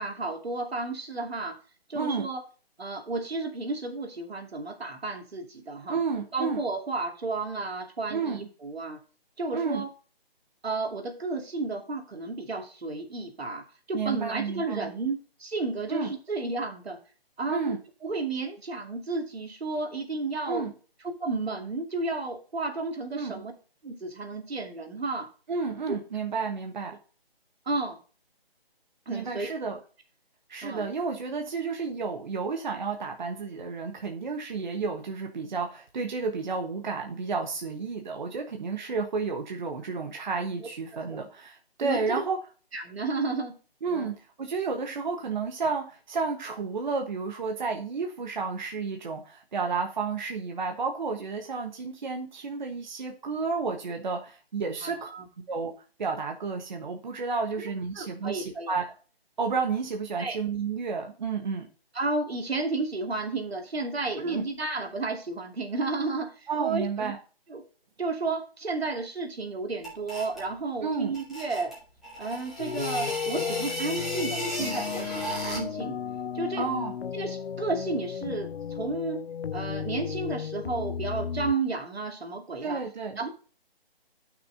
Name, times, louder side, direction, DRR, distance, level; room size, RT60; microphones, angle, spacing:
voice 1, 0.0-1.6 1.9-2.4 2.8-6.0 6.3-9.0 9.4-9.9 10.6-17.0 17.4-17.7 18.0-20.6 21.2-23.5 23.8-25.3 25.9-26.0 27.7-28.0 29.1-29.5 30.6-30.9 41.1-41.2 41.8-42.2 42.7-43.5 43.9-44.1 54.8-55.3 57.6-58.7 60.2-60.4 61.9-67.1 67.5-67.6 68.0-71.8 72.2-76.0 76.3-76.7 77.1-79.2 79.5-82.8 83.2-83.3, right 3 dB, 75° right, 4 dB, 2.5 m, -32 dB
voice 2, 1.9-2.3 5.9-6.6 8.1-8.5 9.5-9.8 13.9-14.9 15.9-16.1 17.5-17.8 20.5-20.7 23.1-23.4 25.5-27.0 29.1-29.8 30.5-42.4 43.8-55.1 55.5-55.7 56.0-58.8 59.4-61.7 64.2-64.4 66.5-67.2 70.8-71.2 76.6-76.9 82.6-83.2, right 4 dB, 45° right, 3 dB, 1.3 m, -31 dB
sound 1, 69.8-70.5 71.1-75.8, equal, ahead, 2.2 m, -36 dB
sound 2, 72.6-81.5, left 7 dB, 80° left, 0.5 m, -34 dB
12.5 x 6.2 x 2.7 m, 0.37 s
figure-of-eight pair, 160°, 31 cm